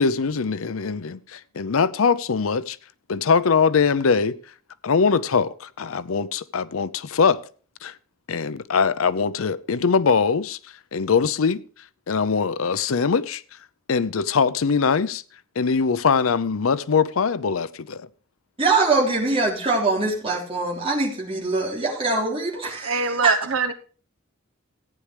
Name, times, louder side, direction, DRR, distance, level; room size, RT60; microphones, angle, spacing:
voice 1, 0.0-2.8 3.1-4.4 4.8-7.4 7.8-7.9 8.3-11.6 12.1-13.6 13.9-15.2 15.6-18.1, left 5 dB, 85° left, 0.6 m, -22 dB
voice 2, 18.6-23.3, right 3 dB, 30° right, 3.3 m, -23 dB
voice 3, 22.8-23.7, right 5 dB, 75° right, 1.0 m, -23 dB
14.5 x 9.6 x 3.3 m
head